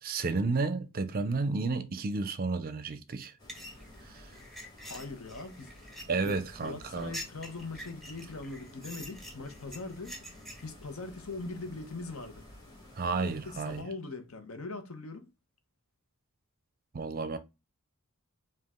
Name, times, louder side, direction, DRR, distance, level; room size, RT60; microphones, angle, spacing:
voice 1, 0.0-3.3 4.0-4.2 6.1-7.1 13.0-13.9 16.9-17.4, right 3 dB, 45° right, 0.5 m, -32 dB
sound 1, 3.2-10.7, equal, ahead, 0.9 m, -46 dB
sound 2, 3.4-13.8, left 1 dB, 20° left, 1.9 m, -52 dB
voice 2, 4.8-5.7 6.2-6.4 6.6-10.1 10.6-12.5 13.1-15.3, left 3 dB, 70° left, 0.9 m, -41 dB
5.1 x 2.4 x 3.6 m
head